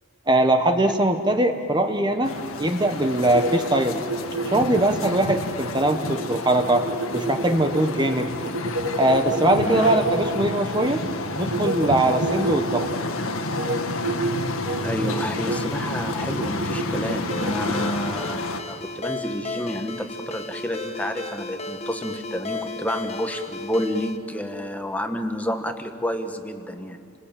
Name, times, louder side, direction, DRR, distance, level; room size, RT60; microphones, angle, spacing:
voice 1, 0.3-4.0 4.4-6.9 7.1-8.3 9.0-11.0 11.4-12.9, right 1 dB, 20° right, 6 dB, 1.1 m, -21 dB
sound 1, 2.2-18.6, left 2 dB, 70° left, 1.7 m, -30 dB
sound 2, 3.1-10.9 11.4-13.0 13.5-13.8 14.0-14.3 14.6-15.6 16.1-17.8, right 2 dB, 80° right, 5.0 m, -29 dB
voice 2, 9.6-10.1 14.8-27.1, equal, 5° left, 6 dB, 1.3 m, -29 dB
Ringtone, 17.3-24.2, left 2 dB, 30° left, 1.4 m, -34 dB
30.0 x 21.0 x 9.0 m, 2.9 s
head